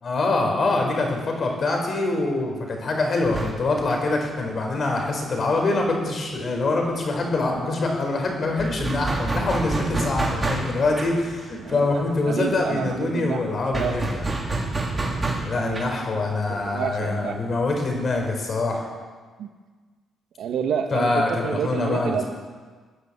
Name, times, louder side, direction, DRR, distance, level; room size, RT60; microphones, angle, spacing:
voice 1, 0.0-14.3 15.4-18.9 20.9-22.3, left 2 dB, 45° left, 2 dB, 4.8 m, -24 dB
sound 1, 3.2-6.7 6.9-7.0 7.3-18.3, right 2 dB, 20° right, 3.8 m, -30 dB
voice 2, 11.6-13.9 15.5-16.4 16.7-17.4 19.4-19.5 20.4-22.3, right 7 dB, 75° right, 5 dB, 1.7 m, -29 dB
17.5 x 9.8 x 8.3 m, 1.5 s
cardioid pair, 90°, 0 cm